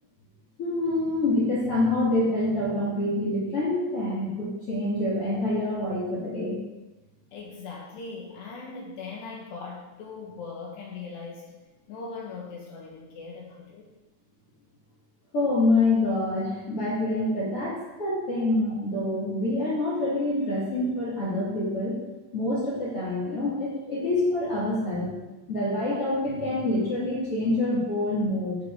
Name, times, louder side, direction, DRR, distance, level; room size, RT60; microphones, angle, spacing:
voice 1, 0.6-6.6 15.3-22.0 22.3-25.1 25.5-28.6, left 2 dB, 35° left, -6 dB, 3.1 m, -26 dB
voice 2, 7.3-11.6 11.9-13.9, left 4 dB, 65° left, -1 dB, 3.2 m, -40 dB
16.5 x 8.0 x 4.1 m, 1.1 s
omnidirectional pair, 5.8 m